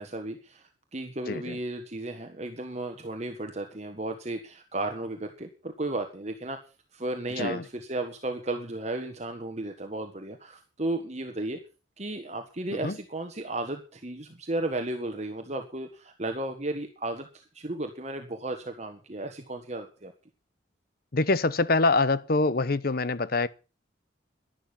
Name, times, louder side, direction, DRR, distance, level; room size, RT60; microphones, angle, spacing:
voice 1, 0.0-6.6 6.9-11.6 12.0-20.1, right 2 dB, 35° right, 1.5 m, -34 dB
voice 2, 1.3-1.6 7.4-7.6 12.8-13.0 21.1-23.5, left 3 dB, 50° left, 0.8 m, -25 dB
11.5 x 11.5 x 7.1 m
head